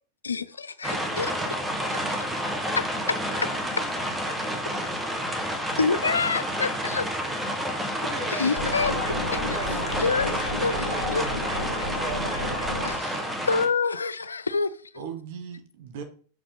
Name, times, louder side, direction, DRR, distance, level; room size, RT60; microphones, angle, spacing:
voice 1, 0.2-1.3 3.1-3.2 5.8-7.1 8.3-8.9 9.3-9.4 10.0-10.8 11.1-11.2 12.8-14.8, left 4 dB, 75° left, 0.5 m, -27 dB
sound 1, 0.8-13.7, equal, 10° right, 1.8 m, -30 dB
voice 2, 5.6-6.0 8.1-9.1 9.5-10.0 10.8-11.6 12.0-12.7, right 1 dB, 25° right, 2.9 m, -39 dB
sound 2, 8.6-12.9, left 1 dB, 90° right, 2.5 m, -31 dB
voice 3, 10.6-12.6 15.0-16.0, right 6 dB, 50° right, 1.8 m, -40 dB
6.6 x 5.8 x 5.4 m
figure-of-eight pair, 90°, 0 cm